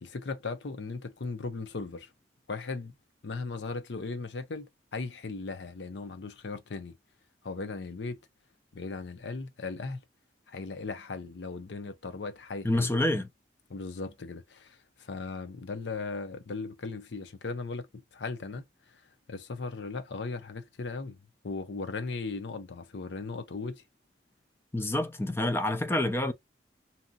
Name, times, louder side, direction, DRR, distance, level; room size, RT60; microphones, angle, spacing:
voice 1, 0.0-2.1 2.5-2.9 3.2-7.0 7.4-8.2 8.7-10.0 10.5-12.9 13.7-18.7 18.9-19.0 19.3-21.2 21.4-23.8, left 3 dB, 80° left, 0.7 m, -37 dB
voice 2, 12.6-13.3 24.7-26.3, left 1 dB, 15° left, 0.4 m, -27 dB
2.8 x 2.6 x 2.3 m
head